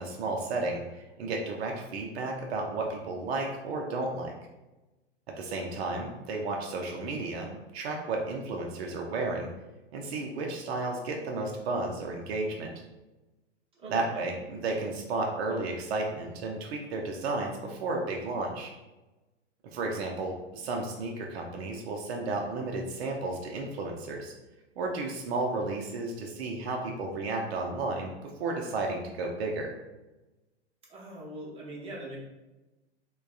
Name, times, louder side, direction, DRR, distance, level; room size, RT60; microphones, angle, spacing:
voice 1, 0.0-4.3 5.3-9.5 9.9-12.7 13.9-18.7 19.7-24.3 24.8-28.1 28.4-29.7, right 3 dB, 65° right, 0 dB, 0.5 m, -33 dB
voice 2, 13.7-14.2 30.9-32.2, right 1 dB, 15° right, -5 dB, 0.9 m, -41 dB
3.4 x 2.2 x 2.3 m, 1.1 s
figure-of-eight pair, 100°, 34 cm